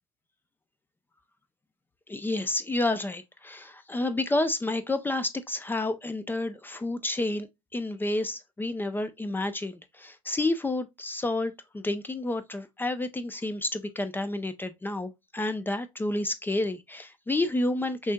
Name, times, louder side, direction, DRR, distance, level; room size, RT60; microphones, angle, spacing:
voice 1, 2.1-7.5 7.7-18.1, left 2 dB, 10° left, 0.5 m, -30 dB
6.0 x 2.6 x 2.2 m
figure-of-eight pair, 65°, 18 cm